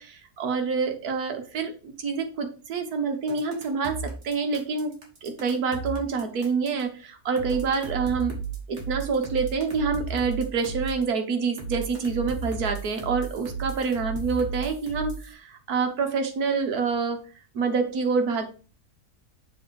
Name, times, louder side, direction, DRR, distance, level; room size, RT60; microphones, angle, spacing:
voice 1, 0.0-4.0 4.2-4.9 5.2-8.4 8.7-17.2 17.5-18.5, right 5 dB, 70° right, 5 dB, 1.5 m, -27 dB
sound 1, 3.3-6.8 7.4-11.0 11.6-15.3, right 6 dB, 45° right, 1.9 m, -34 dB
7.0 x 3.3 x 4.6 m, 0.37 s
omnidirectional pair, 1.7 m